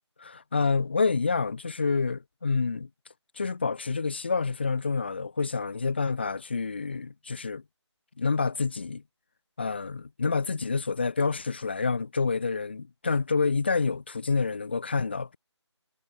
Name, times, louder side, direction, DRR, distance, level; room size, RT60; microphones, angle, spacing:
voice 1, 0.2-2.9 3.4-7.6 8.2-9.0 9.6-15.4, left 4 dB, 20° left, 0.7 m, -28 dB
figure-of-eight pair, 170°, 15 cm